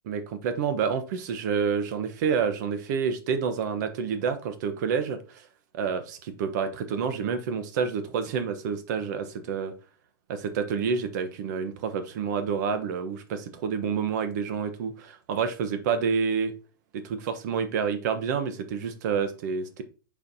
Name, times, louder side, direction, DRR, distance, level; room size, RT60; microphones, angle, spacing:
voice 1, 0.1-5.5 5.7-9.7 10.3-16.5 16.9-19.8, right 6 dB, 50° right, 1.0 m, -28 dB
7.5 x 4.6 x 2.8 m
supercardioid pair, 155°, 12 cm